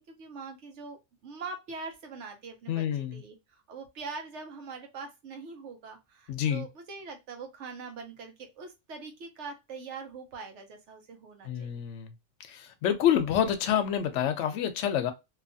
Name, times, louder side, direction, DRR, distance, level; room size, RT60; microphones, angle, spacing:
voice 1, 0.0-2.8 3.1-11.8, right 4 dB, 75° right, 1.0 m, -43 dB
voice 2, 2.7-3.2 6.3-6.7 11.4-12.1 12.4-15.1, left 9 dB, 75° left, 0.9 m, -28 dB
2.7 x 2.3 x 2.6 m
omnidirectional pair, 1.2 m